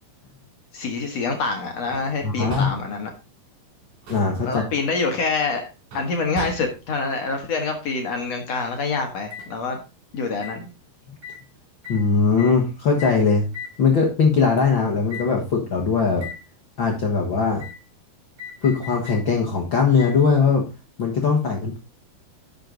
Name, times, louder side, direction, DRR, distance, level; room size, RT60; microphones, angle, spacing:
voice 1, 0.7-3.1 4.4-9.8 10.1-10.7, left 4 dB, 55° left, 3 dB, 2.0 m, -26 dB
sound 1, 1.9-2.2 2.5-2.9 3.8-4.4 5.9-6.9 9.3-9.5 10.4-10.6 11.2-11.4 11.8-12.0 12.4-12.6 13.0-13.2 13.5-13.8 14.6-14.7 15.1-15.3 16.2-16.4 17.6-17.8 18.4-19.2 20.0-20.2 21.0-21.1, left 3 dB, 50° right, 4.2 m, -37 dB
voice 2, 2.2-2.7 4.1-4.6 11.9-13.5 13.8-16.3 16.8-17.6 18.6-20.6 21.0-21.8, left 5 dB, 85° left, -1 dB, 1.0 m, -20 dB
10.5 x 6.7 x 3.8 m, 0.29 s
omnidirectional pair, 4.5 m